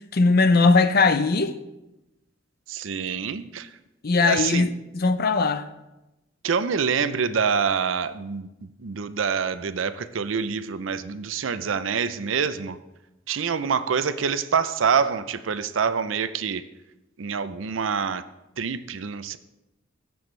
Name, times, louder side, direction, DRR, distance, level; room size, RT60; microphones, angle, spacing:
voice 1, 0.1-1.5 4.0-5.6, left 3 dB, 55° left, 0.6 m, -19 dB
voice 2, 2.7-3.7 4.2-4.7 6.4-12.8 13.3-16.6 17.2-18.2 18.6-19.4, right 6 dB, 85° right, 0.5 m, -26 dB
16.5 x 7.0 x 3.2 m
head